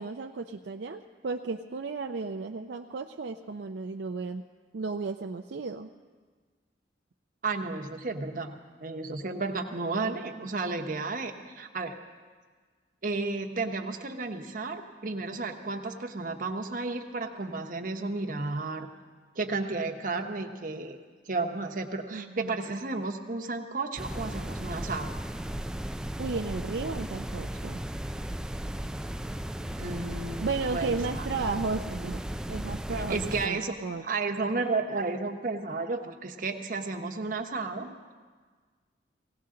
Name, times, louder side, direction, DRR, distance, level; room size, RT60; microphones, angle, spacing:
voice 1, 0.0-4.4 4.7-5.9 22.1-22.6 26.2-27.8 30.4-34.0 37.8-38.0, right 4 dB, 70° right, 5 dB, 0.5 m, -34 dB
voice 2, 7.4-11.9 13.0-18.9 19.4-21.0 21.3-25.1 29.8-31.3 32.9-33.7 34.0-37.9, right 3 dB, 50° right, 5 dB, 1.0 m, -33 dB
sound 1, 24.0-33.5, right 1 dB, 5° right, 0.3 m, -35 dB
18.0 x 17.5 x 3.8 m, 1.5 s
head